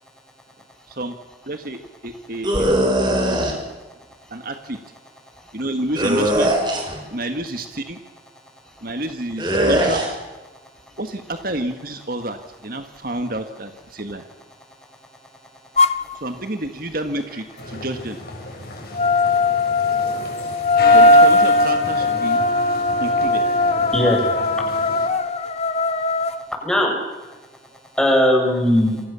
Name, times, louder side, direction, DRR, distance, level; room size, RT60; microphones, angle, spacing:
voice 1, 1.5-3.5 4.3-4.8 5.5-6.5 7.1-8.0 8.8-10.0 11.0-12.4 12.6-14.2 16.2-18.2 20.9-22.4 23.0-23.4, right 1 dB, 50° right, 7 dB, 1.8 m, -29 dB
voice 2, 2.1-2.4 4.2-4.4 5.4-5.5 6.9-7.3 8.6-8.9 9.6-9.7 10.9-11.0 12.8-13.2 15.9-16.1 23.9-24.2 24.5-24.6 26.6-27.0 27.9-29.0, left 1 dB, 5° left, 0 dB, 7.1 m, -21 dB
sound 1, 2.4-3.5 6.0-7.0 9.4-10.1, right 1 dB, 25° right, 5.7 m, -20 dB
sound 2, 15.8-16.0 18.9-26.4, left 2 dB, 35° left, 1.2 m, -18 dB
sound 3, 17.6-25.1, left 2 dB, 55° left, 6.9 m, -34 dB
29.0 x 25.5 x 7.1 m, 1.2 s
head